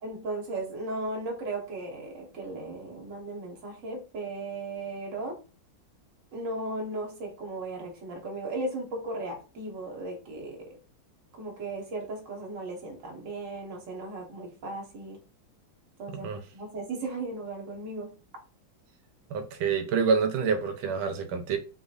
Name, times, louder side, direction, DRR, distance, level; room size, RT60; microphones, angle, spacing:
voice 1, 0.0-5.4 6.3-10.8 11.3-15.2 16.0-18.1, right 2 dB, 45° right, 1.6 m, -36 dB
voice 2, 16.1-16.4 19.3-21.6, right 5 dB, 85° right, 1.5 m, -27 dB
5.9 x 3.5 x 2.5 m
omnidirectional pair, 2.2 m